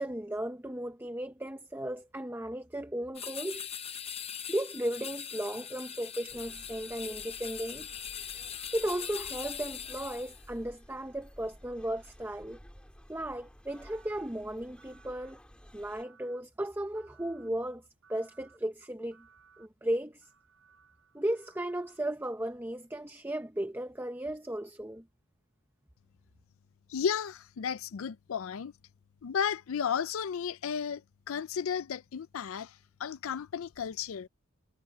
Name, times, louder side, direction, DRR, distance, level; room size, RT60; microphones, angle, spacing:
voice 1, 0.0-3.7 4.5-7.9 8.7-12.6 13.1-15.4 15.7-17.8 18.1-19.3 19.6-20.3 21.1-25.0, right 1 dB, 10° right, 0.8 m, -35 dB
sound 1, 3.1-10.5, left 9 dB, 30° left, 0.8 m, -41 dB
sound 2, 5.1-10.4 13.7-14.2 14.8-15.3 15.9-16.4 16.9-17.5 18.0-18.6 19.1-19.7 20.2-22.0, right 6 dB, 80° right, 5.0 m, -63 dB
sound 3, 6.3-16.0, equal, 5° left, 2.1 m, -55 dB
voice 2, 26.9-28.7 29.2-31.0 31.3-34.3, left 7 dB, 75° left, 0.4 m, -33 dB
head